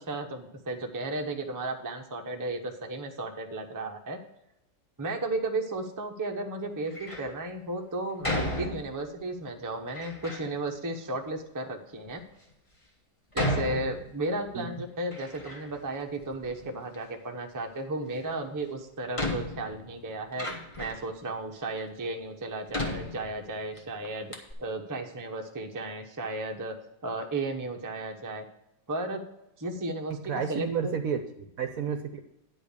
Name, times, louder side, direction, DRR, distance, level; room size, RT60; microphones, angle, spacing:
voice 1, 0.0-4.2 5.0-12.2 13.3-20.5 20.8-24.3 24.6-26.7 27.0-28.4 28.9-29.2 29.6-30.9, right 2 dB, 15° right, 3 dB, 0.6 m, -34 dB
Door, 6.9-7.3 8.2-9.2 9.9-10.5 11.3-11.4 12.1-12.2 13.3-14.5 14.8-15.9 16.2-17.0 18.4-18.5 19.1-21.1 21.8-21.9 22.7-23.8 24.0-24.1 24.3-24.5, left 1 dB, 20° left, 1.2 m, -34 dB
voice 2, 30.1-32.2, right 7 dB, 65° right, 7 dB, 1.0 m, -31 dB
9.7 x 5.2 x 6.7 m, 0.84 s
omnidirectional pair, 1.9 m